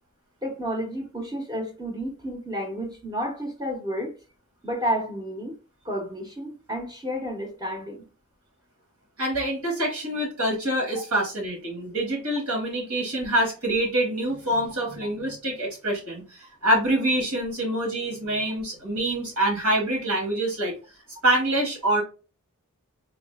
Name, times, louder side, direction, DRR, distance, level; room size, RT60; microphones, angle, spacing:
voice 1, 0.4-4.2 4.6-5.5 5.8-8.0 14.8-14.9, equal, 20° right, 0.7 m, -31 dB
voice 2, 9.2-20.7 21.2-22.0, right 1 dB, 85° right, 1.6 m, -25 dB
4.0 x 2.4 x 2.3 m
head